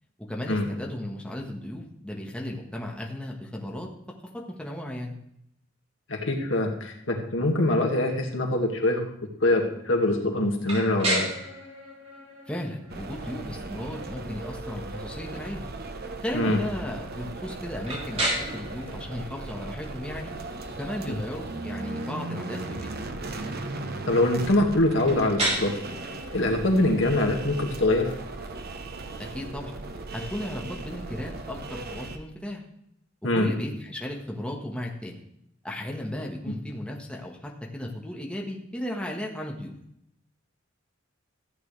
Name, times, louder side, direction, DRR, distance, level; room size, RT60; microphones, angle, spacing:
voice 1, 0.3-3.9 4.5-5.1 12.5-15.7 16.2-20.3 20.8-22.9 29.3-29.8 30.1-32.6 33.3-35.2 35.6-39.7, left 1 dB, 5° left, -1 dB, 1.4 m, -35 dB
voice 2, 6.1-9.1 9.4-11.3 16.3-16.6 21.1-21.2 24.1-25.8 26.3-28.1 33.2-33.5 36.5-36.6, left 1 dB, 70° left, 2 dB, 1.9 m, -24 dB
sound 1, 10.6-30.4, right 1 dB, 35° right, 3.4 m, -36 dB
sound 2, 12.9-32.2, right 2 dB, 55° right, 0.9 m, -37 dB
14.5 x 8.9 x 3.3 m, 0.75 s
head